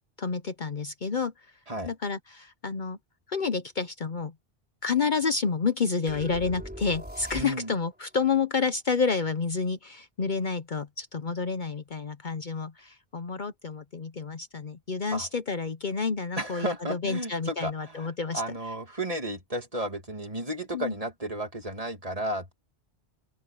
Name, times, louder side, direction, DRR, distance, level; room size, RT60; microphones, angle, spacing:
voice 1, 0.2-1.3 1.9-3.0 3.3-4.3 4.8-18.4 20.7-20.9, left 5 dB, 50° left, 0.9 m, -29 dB
sound 1, 6.1-7.9, equal, 10° right, 4.7 m, -41 dB
voice 2, 7.3-7.7 15.1-15.3 16.4-22.5, right 1 dB, 35° right, 2.6 m, -33 dB
open air
omnidirectional pair, 1.1 m